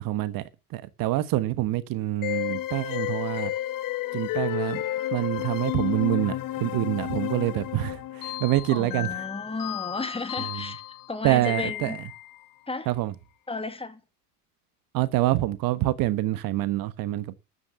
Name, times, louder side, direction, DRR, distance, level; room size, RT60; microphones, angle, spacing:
voice 1, 0.0-3.5 4.1-4.8 5.1-9.1 10.4-10.7 11.2-12.0 12.9-13.1 14.9-17.4, right 16 dB, 45° right, 1.3 m, -26 dB
sound 1, 2.2-12.4, left 14 dB, 45° left, 1.3 m, -32 dB
voice 2, 8.7-10.8 11.1-12.0 12.7-12.9 13.5-14.0, left 3 dB, 10° left, 2.3 m, -33 dB
13.0 x 9.7 x 6.8 m
figure-of-eight pair, 75°, 47 cm